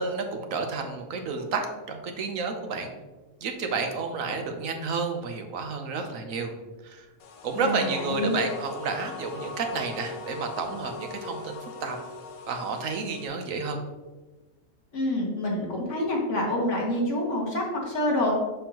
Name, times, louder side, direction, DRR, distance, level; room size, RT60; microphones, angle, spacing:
voice 1, 0.0-2.9 3.4-6.5 6.8-7.1 7.4-12.0 12.5-13.8, right 4 dB, 70° right, 5 dB, 1.2 m, -31 dB
sound 1, 7.2-13.3, left 3 dB, 85° left, 1.1 m, -40 dB
voice 2, 7.5-8.4 14.9-18.3, left 1 dB, 60° left, -2 dB, 1.7 m, -27 dB
6.9 x 5.4 x 2.9 m, 1.2 s
omnidirectional pair, 1.4 m